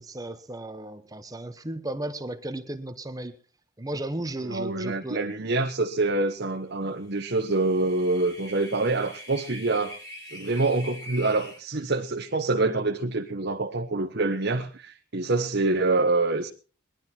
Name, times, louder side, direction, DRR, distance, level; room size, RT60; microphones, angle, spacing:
voice 1, 0.0-3.3 3.8-5.2, right 1 dB, 15° right, 0.9 m, -35 dB
voice 2, 4.4-10.0 10.3-16.5, right 2 dB, 50° right, 1.0 m, -26 dB
sound 1, 7.3-11.6, equal, 20° left, 4.0 m, -43 dB
20.5 x 12.0 x 4.4 m
head